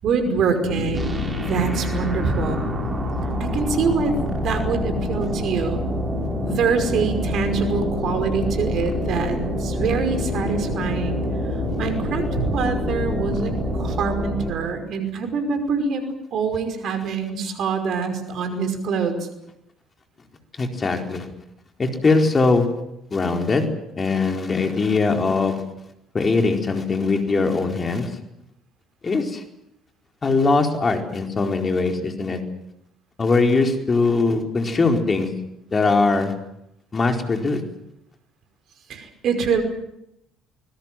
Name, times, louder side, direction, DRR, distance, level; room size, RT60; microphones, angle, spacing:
voice 1, 0.0-1.2 1.5-2.6 3.4-4.1 4.4-5.9 6.4-11.2 11.8-19.2 38.9-39.6, right 5 dB, 55° right, 7 dB, 5.4 m, -24 dB
sound 1, 0.6-14.0, left 3 dB, 75° left, 7.8 m, -30 dB
sound 2, 0.9-14.5, equal, 25° right, 6.6 m, -28 dB
voice 2, 20.6-21.3 21.8-22.7 23.1-23.7 24.0-25.6 26.1-28.1 29.0-29.4 30.2-32.4 33.2-35.3 35.7-36.3 36.9-37.6, left 3 dB, 30° left, 4 dB, 4.5 m, -21 dB
25.5 x 21.5 x 7.7 m, 0.80 s
hypercardioid pair, 60°, 0 cm